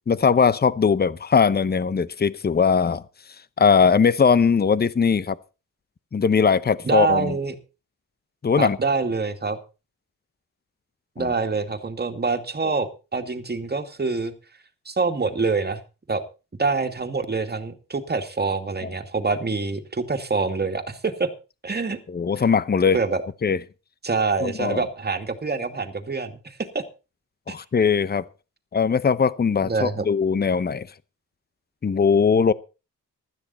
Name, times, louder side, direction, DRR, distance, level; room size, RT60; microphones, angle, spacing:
voice 1, 0.1-3.0 3.6-5.4 6.1-7.3 8.4-8.8 11.2-11.3 12.6-12.7 22.1-23.0 23.4-23.6 24.4-24.8 27.5-28.2 28.7-30.9 31.8-32.5, left 6 dB, 30° left, 0.8 m, -20 dB
voice 2, 6.8-7.5 8.6-9.6 11.2-14.3 14.9-15.8 16.1-16.2 16.6-21.3 21.6-22.0 22.9-23.2 24.0-26.8 27.5-27.6 29.6-30.1, right 4 dB, 30° right, 2.4 m, -25 dB
15.5 x 12.5 x 4.3 m
cardioid pair, 90°, 34 cm